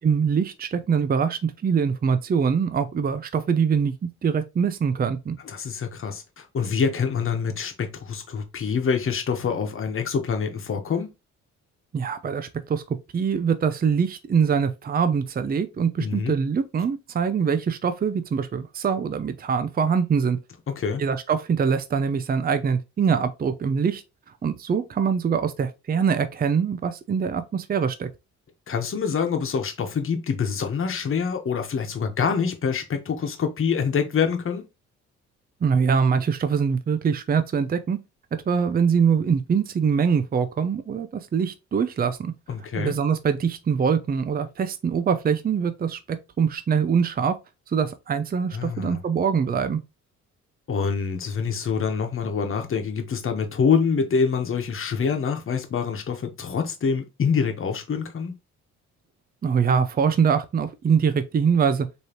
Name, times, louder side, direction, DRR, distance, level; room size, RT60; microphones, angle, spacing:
voice 1, 0.0-3.9 4.2-5.3 11.9-20.4 21.0-24.0 24.4-28.1 35.6-38.0 38.5-42.3 42.7-47.4 47.7-49.8 59.4-61.9, right 6 dB, 30° right, 0.6 m, -23 dB
voice 2, 5.5-11.1 16.0-16.3 20.7-21.0 28.7-34.7 42.5-42.9 48.5-49.0 50.7-58.3, left 6 dB, 45° left, 1.3 m, -26 dB
5.3 x 3.2 x 3.0 m
cardioid pair, 90°, 30 cm